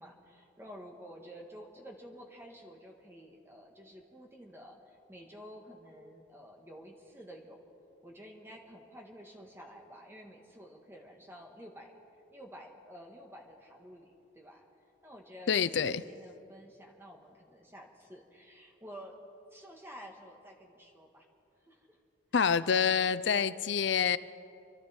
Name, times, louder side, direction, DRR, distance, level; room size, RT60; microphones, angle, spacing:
voice 1, 0.0-7.6 8.0-11.9 12.3-14.6 15.0-19.1 19.5-21.3 21.6-22.0 22.6-23.5, equal, 10° right, 1 dB, 1.7 m, -51 dB
voice 2, 15.5-16.0 22.3-24.2, left 7 dB, 60° left, 15 dB, 0.5 m, -27 dB
27.5 x 12.0 x 4.4 m, 2.6 s
head